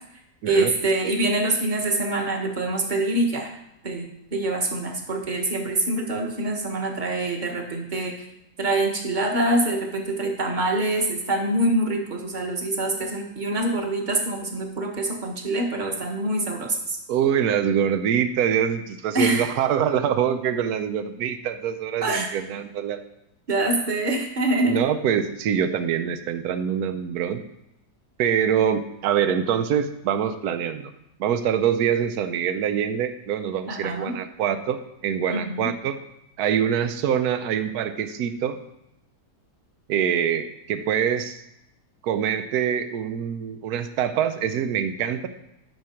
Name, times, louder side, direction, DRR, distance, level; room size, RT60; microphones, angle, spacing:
voice 1, 0.4-3.5 3.8-8.1 8.6-17.0 19.1-19.5 22.0-22.3 23.5-24.8 33.7-34.1 35.3-35.7, right 2 dB, 30° right, 2 dB, 1.4 m, -25 dB
voice 2, 17.1-23.0 24.6-27.4 28.2-30.9 31.2-36.0 36.4-38.6 39.9-41.4 42.0-45.3, right 8 dB, 70° right, 10 dB, 1.2 m, -24 dB
12.5 x 6.4 x 4.5 m, 0.82 s
omnidirectional pair, 1.8 m